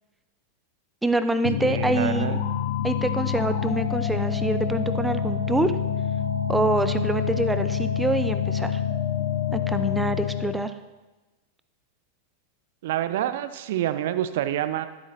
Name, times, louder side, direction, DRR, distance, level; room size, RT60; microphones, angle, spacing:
voice 1, 1.0-2.3 2.8-5.7 6.5-8.8 9.5-10.7, right 2 dB, 5° right, 10 dB, 0.5 m, -25 dB
sound 1, 1.4-10.7, left 8 dB, 55° left, 0.6 m, -27 dB
voice 2, 1.6-2.4 12.8-14.9, right 12 dB, 55° right, 12 dB, 0.5 m, -27 dB
13.0 x 7.9 x 2.9 m, 1.2 s
figure-of-eight pair, 90°, 0 cm